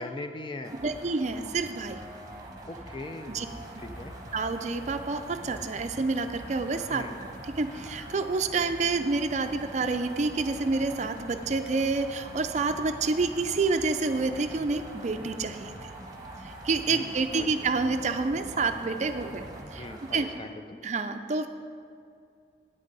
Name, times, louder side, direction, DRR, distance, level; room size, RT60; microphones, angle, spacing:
voice 1, 0.0-0.8 2.7-3.4 3.8-4.1 6.9-7.2 16.9-17.5 19.8-20.8, left 2 dB, 25° left, 6 dB, 0.5 m, -40 dB
sound 1, 0.6-20.4, right 1 dB, 20° right, 1.0 m, -44 dB
voice 2, 0.8-2.0 3.3-3.5 4.3-15.9 16.4-19.9 20.1-20.3 20.8-21.5, right 3 dB, 40° right, 8 dB, 0.4 m, -28 dB
sound 2, 3.3-19.7, left 1 dB, 55° left, 1.0 m, -49 dB
11.0 x 9.0 x 4.0 m, 2.3 s
head